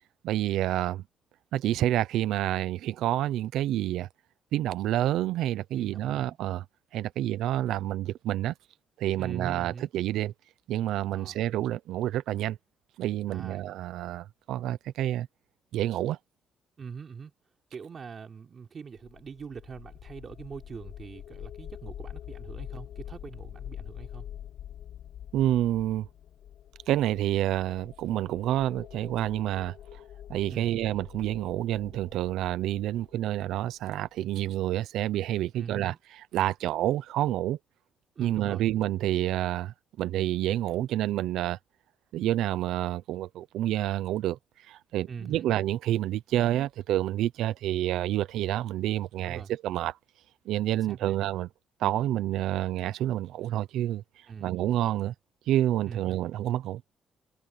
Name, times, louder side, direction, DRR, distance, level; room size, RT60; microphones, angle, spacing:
voice 1, 0.2-1.0 1.5-4.1 4.5-6.6 6.9-8.5 9.0-10.3 10.7-12.6 13.0-15.3 15.7-16.2 25.3-26.1 26.9-30.0 30.3-37.6 38.2-41.6 42.1-44.4 44.7-49.9 50.5-51.5 51.8-54.0 54.4-55.1 55.5-56.8, right 13 dB, 85° right, 0.7 m, -28 dB
voice 2, 5.7-6.4 9.2-9.9 11.1-11.4 13.3-13.7 16.8-17.3 17.7-24.3 30.5-30.7 35.5-36.0 38.2-38.7 45.1-45.5 49.2-49.5 50.7-51.2 54.3-54.5 55.9-56.0, right 6 dB, 45° right, 3.4 m, -42 dB
sound 1, 19.0-34.1, left 10 dB, 70° left, 7.6 m, -45 dB
cardioid pair, 90°, 0 cm